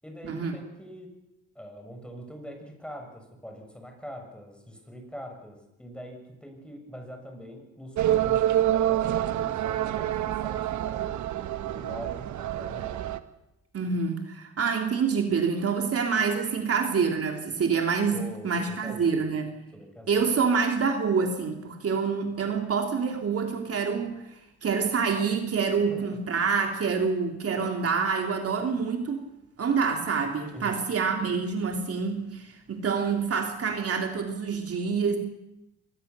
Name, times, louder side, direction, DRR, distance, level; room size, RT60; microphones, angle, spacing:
voice 1, 0.0-1.1 1.5-11.3 11.6-13.1 18.1-19.3 19.7-20.2 25.9-26.0 30.5-30.8, equal, 5° left, 3 dB, 6.7 m, -43 dB
sound 1, 8.0-13.2, right 12 dB, 70° right, 1.4 m, -27 dB
voice 2, 13.7-19.5 20.1-24.2 24.6-29.3 29.6-35.2, right 5 dB, 50° right, 3 dB, 3.4 m, -27 dB
24.0 x 20.5 x 7.0 m, 0.91 s
cardioid pair, 90°, 30 cm